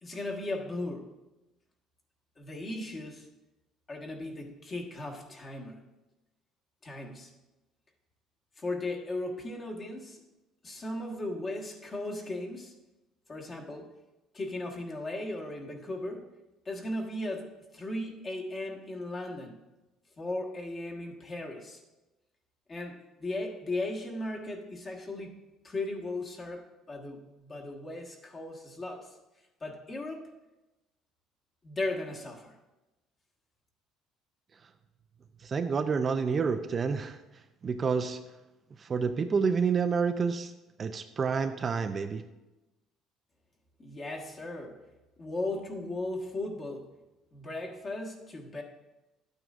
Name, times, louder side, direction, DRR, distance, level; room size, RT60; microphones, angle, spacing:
voice 1, 0.0-1.1 2.4-3.3 3.9-5.9 6.8-7.3 8.6-10.2 10.6-12.7 13.3-13.9 14.3-16.3 16.6-19.6 20.2-21.8 22.7-25.4 25.6-29.2 29.6-30.2 31.6-32.5 43.8-44.8 45.2-46.9 47.3-48.6, left 2 dB, 30° left, 0 dB, 1.5 m, -37 dB
voice 2, 35.4-37.2 37.6-38.2 38.8-40.5 40.8-42.2, right 5 dB, 35° right, 8 dB, 0.5 m, -28 dB
12.0 x 9.0 x 2.6 m, 1.0 s
cardioid pair, 120°, 0 cm